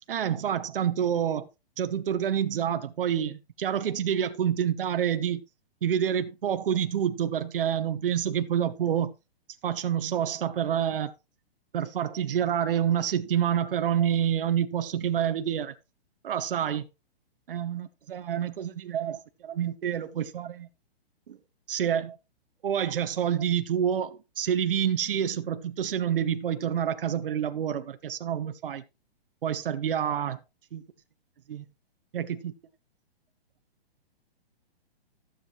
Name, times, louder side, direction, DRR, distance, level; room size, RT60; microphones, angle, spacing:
voice 1, 0.1-1.5 1.8-5.4 5.8-9.1 9.6-11.1 11.7-15.7 16.2-16.8 17.5-20.7 21.3-21.4 21.7-22.2 22.6-28.8 29.4-30.4 30.7-30.8 31.5-31.6 32.1-32.5, right 9 dB, 60° right, 1.0 m, -28 dB
15.0 x 7.5 x 3.1 m
hypercardioid pair, 175°, 31 cm